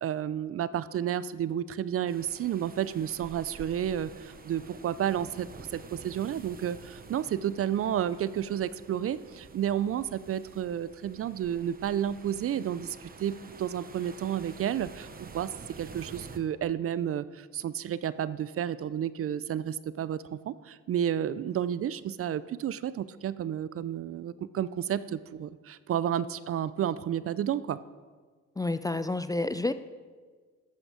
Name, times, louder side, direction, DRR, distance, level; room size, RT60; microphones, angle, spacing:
voice 1, 0.0-27.8, right 10 dB, 50° right, 17 dB, 0.5 m, -31 dB
sound 1, 2.1-16.4, right 4 dB, 30° right, 0.9 m, -49 dB
voice 2, 28.6-29.7, left 2 dB, 10° left, 12 dB, 0.3 m, -29 dB
12.5 x 7.9 x 5.0 m, 1.5 s
cardioid pair, 90°, 30 cm